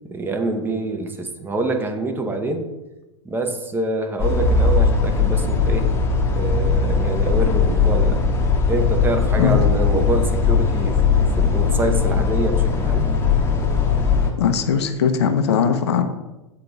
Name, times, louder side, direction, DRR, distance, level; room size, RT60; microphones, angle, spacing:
voice 1, 0.1-2.7 3.2-5.9 6.3-8.2 8.7-13.1, right 2 dB, 15° right, 5 dB, 0.8 m, -26 dB
sound 1, 4.2-14.3, left 5 dB, 15° left, 1.0 m, -19 dB
voice 2, 14.4-16.0, left 7 dB, 60° left, 7 dB, 0.7 m, -19 dB
7.8 x 3.8 x 3.5 m, 1.0 s
figure-of-eight pair, 95°, 15 cm